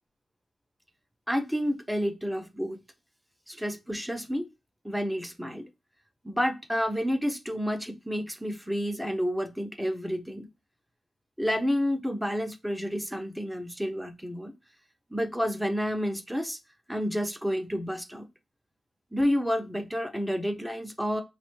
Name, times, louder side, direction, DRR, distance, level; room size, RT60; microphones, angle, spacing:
voice 1, 1.3-2.8 3.5-4.5 4.8-5.7 6.2-10.5 11.4-14.5 15.1-16.6 16.9-18.3 19.1-21.2, equal, ahead, 6 dB, 0.5 m, -30 dB
2.9 x 2.1 x 3.0 m, 0.25 s
wide cardioid pair, 90°, 0 cm